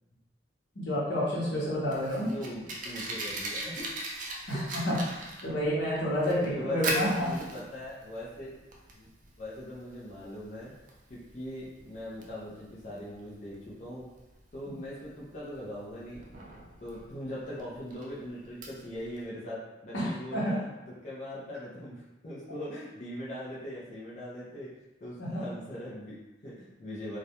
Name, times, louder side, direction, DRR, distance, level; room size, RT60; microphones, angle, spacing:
voice 1, 0.7-2.3 4.5-5.0 5.4-7.3 19.9-20.6 25.2-25.4, equal, 75° left, -7 dB, 0.9 m, -29 dB
Fire, 1.5-19.2, right 1 dB, 45° right, 0.3 m, -40 dB
voice 2, 2.2-3.9 4.4-4.6 6.5-8.6 8.9-9.1 9.4-10.7 11.1-14.1 14.5-16.3 16.8-20.7 21.0-24.7 25.0-27.2, left 1 dB, 40° left, -8 dB, 0.5 m, -40 dB
2.4 x 2.1 x 2.8 m, 1.1 s
head